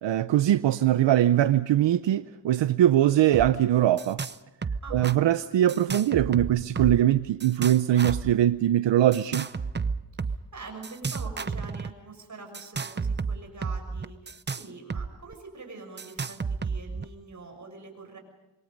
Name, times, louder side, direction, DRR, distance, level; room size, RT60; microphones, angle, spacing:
voice 1, 0.0-4.2 4.9-9.5, right 12 dB, 85° right, 0.7 m, -22 dB
sound 1, 3.3-3.5 3.8-4.4 4.6-5.2 5.7-7.1 7.4-8.3 9.1-10.4 10.8-11.9 12.5-15.1 15.3-15.4 16.0-17.0, right 5 dB, 25° right, 0.7 m, -32 dB
voice 2, 4.8-5.2 10.3-18.2, right 3 dB, 40° right, 6.7 m, -44 dB
27.0 x 23.0 x 5.3 m
wide cardioid pair, 105°, 43 cm